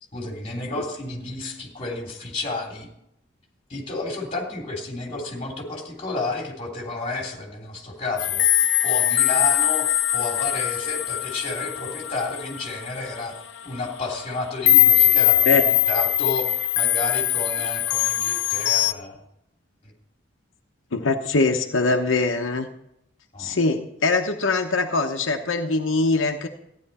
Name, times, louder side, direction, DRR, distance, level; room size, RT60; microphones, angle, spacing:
voice 1, 0.1-2.9 3.7-8.5 8.8-9.9 10.1-13.4 13.6-19.2 19.8-19.9 23.3-23.5, left 2 dB, 30° left, 0 dB, 3.2 m, -31 dB
dead Verstorben, 8.2-13.3 13.8-13.9 14.7-18.9, left 12 dB, 65° left, 0.6 m, -21 dB
voice 2, 20.9-22.7 23.4-26.5, left 3 dB, 90° left, 3 dB, 1.0 m, -22 dB
14.5 x 10.5 x 4.3 m, 0.79 s
head